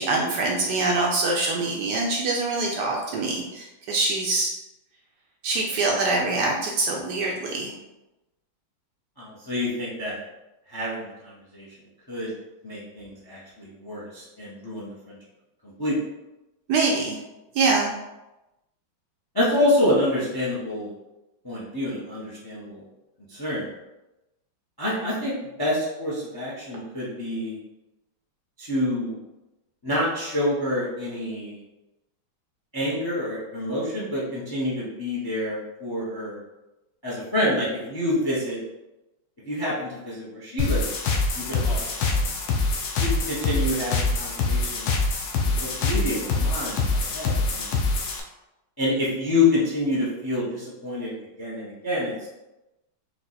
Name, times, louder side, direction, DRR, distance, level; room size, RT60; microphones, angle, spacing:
voice 1, 0.0-4.5 5.4-7.7 16.7-17.2 17.5-17.9, right 3 dB, 70° right, 0 dB, 1.1 m, -24 dB
voice 2, 9.2-10.2 10.7-11.7 12.1-12.3 12.6-15.2 15.6-15.9 19.3-20.9 21.4-22.8 23.3-23.7 24.8-25.3 25.6-27.6 28.6-29.2 29.8-31.6 32.7-36.4 37.0-38.6 39.5-40.9 41.3-41.8 42.1-42.3 43.1-44.9 45.4-47.7 48.8-52.3, left 1 dB, 25° left, -6 dB, 0.5 m, -27 dB
sound 1, 40.6-48.2, left 3 dB, 70° left, 1.3 m, -25 dB
4.6 x 2.5 x 4.0 m, 0.97 s
omnidirectional pair, 2.2 m